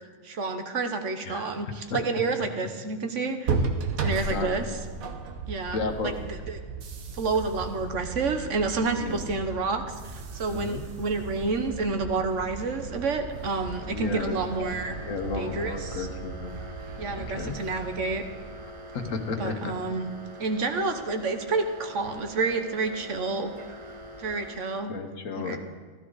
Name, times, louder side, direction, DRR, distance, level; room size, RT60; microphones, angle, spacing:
voice 1, 0.2-3.5 4.0-4.6 5.5-6.1 6.5-6.6 7.1-14.9 15.3-16.1 17.0-18.2 19.4-20.0 20.4-23.5 24.2-24.9 25.4-25.6, right 3 dB, 60° right, 6 dB, 1.3 m, -29 dB
sound 1, 3.4-19.2, right 4 dB, 80° right, 1.5 m, -35 dB
voice 2, 4.1-4.8 5.7-6.1 8.9-9.3 10.5-10.8 13.8-14.4 14.9-16.6 17.1-17.6 18.6-19.7 24.9-25.6, left 4 dB, 65° left, 6 dB, 1.4 m, -33 dB
sound 2, 12.4-24.6, equal, 35° right, 0.5 m, -44 dB
15.0 x 13.0 x 4.0 m, 1.5 s
omnidirectional pair, 1.5 m